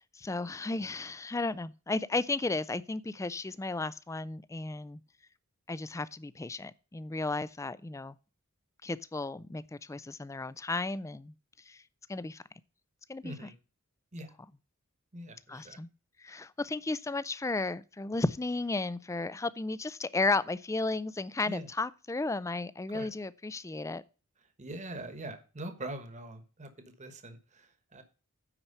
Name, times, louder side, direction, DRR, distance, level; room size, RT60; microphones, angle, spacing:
voice 1, 0.0-5.0 5.7-8.2 8.8-11.3 11.7-11.8 12.1-12.4 13.1-13.5 15.5-15.9 16.2-24.0, left 3 dB, 15° left, 0.4 m, -34 dB
voice 2, 13.2-13.5 14.1-14.3 15.1-15.8 21.5-21.7 22.9-23.1 24.6-28.0, right 1 dB, 35° right, 1.3 m, -43 dB
9.8 x 4.6 x 6.7 m
head